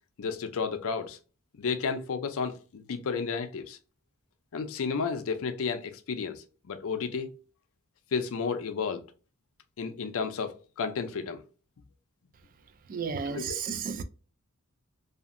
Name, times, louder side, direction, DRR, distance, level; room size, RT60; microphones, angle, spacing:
voice 1, 0.2-1.2 1.6-3.8 4.5-7.3 8.1-9.0 9.8-11.4 13.3-13.6, left 5 dB, 65° left, 0.4 m, -32 dB
voice 2, 12.9-14.0, right 6 dB, 40° right, 0.3 m, -33 dB
2.8 x 2.4 x 2.5 m
head